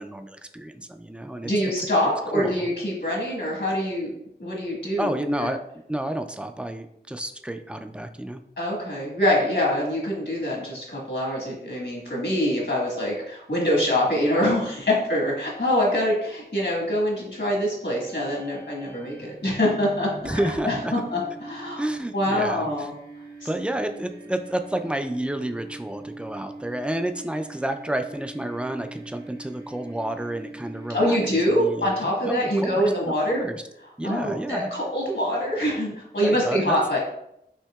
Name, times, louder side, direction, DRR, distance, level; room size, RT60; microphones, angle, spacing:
voice 1, 0.0-1.5 2.3-2.7 5.0-5.6 5.9-8.4 20.2-20.9 21.8-22.9 23.4-31.2 31.5-33.6 34.0-34.7 36.2-36.8, right 1 dB, 5° right, 7 dB, 0.3 m, -30 dB
voice 2, 1.4-4.1 4.4-5.5 8.6-20.4 20.6-21.8 22.1-22.9 30.9-33.4 34.0-37.0, left 1 dB, 75° left, -3 dB, 1.5 m, -24 dB
sound 1, 17.8-31.9, right 2 dB, 70° right, 1.0 m, -43 dB
5.6 x 2.8 x 2.3 m, 0.78 s
wide cardioid pair, 45°, 19 cm